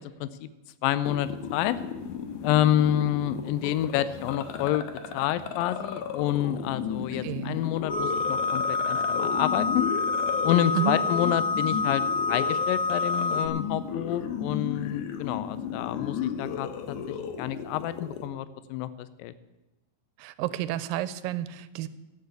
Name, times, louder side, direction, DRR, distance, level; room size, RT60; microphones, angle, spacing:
voice 1, 0.8-1.8 2.4-4.9 5.1-9.9 10.4-12.0 12.3-17.0 17.4-18.9 19.2-19.3, left 12 dB, 90° left, 15 dB, 2.3 m, -28 dB
sound 1, 1.1-18.3, left 7 dB, 70° left, 2.2 m, -35 dB
voice 2, 7.1-7.6 10.7-11.0 20.2-21.9, right 12 dB, 85° right, 14 dB, 2.3 m, -30 dB
sound 2, 7.9-13.5, left 3 dB, 50° left, 1.9 m, -27 dB
12.0 x 8.3 x 8.0 m, 1.0 s
omnidirectional pair, 4.0 m